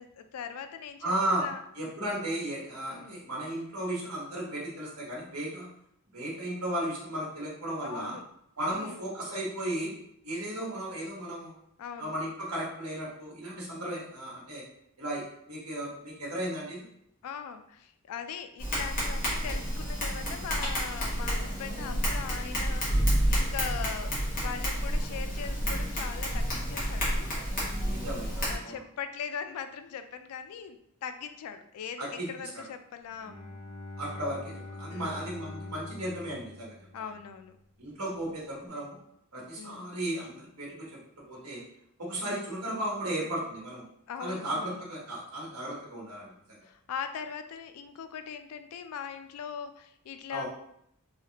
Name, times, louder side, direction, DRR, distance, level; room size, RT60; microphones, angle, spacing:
voice 1, 0.0-1.1 1.4-1.6 2.9-3.2 7.8-8.2 8.7-9.0 11.8-12.1 17.2-27.3 28.5-33.6 34.9-35.3 36.9-37.5 39.6-39.9 44.1-44.8 46.6-50.4, left 7 dB, 85° left, 9 dB, 0.3 m, -40 dB
voice 2, 1.0-1.4 1.7-5.7 6.1-8.2 8.6-9.9 10.2-11.5 12.0-14.6 15.0-16.8 27.8-28.7 32.0-32.3 32.5-32.6 34.0-36.8 37.8-39.0 39.3-40.7 41.3-41.6 42.0-43.8 44.2-46.6 50.3-50.4, right 1 dB, 80° right, -5 dB, 1.2 m, -35 dB
Tap, 18.6-28.6, equal, 40° left, 1.2 m, -30 dB
Bowed string instrument, 33.1-37.6, left 2 dB, 20° left, 0.6 m, -44 dB
3.2 x 2.3 x 2.8 m, 0.73 s
head